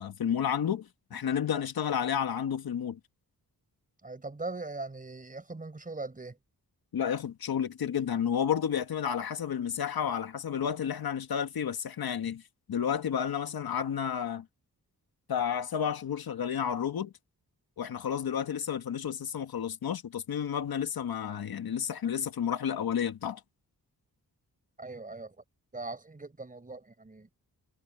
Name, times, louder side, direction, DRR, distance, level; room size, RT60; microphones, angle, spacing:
voice 1, 0.0-3.0 6.9-12.4 12.7-14.4 15.3-17.1 17.8-23.4, left 8 dB, 70° left, 1.6 m, -31 dB
voice 2, 4.0-6.4 24.8-25.4 25.7-27.3, right 3 dB, 20° right, 4.7 m, -40 dB
wide cardioid pair, 135°, 37 cm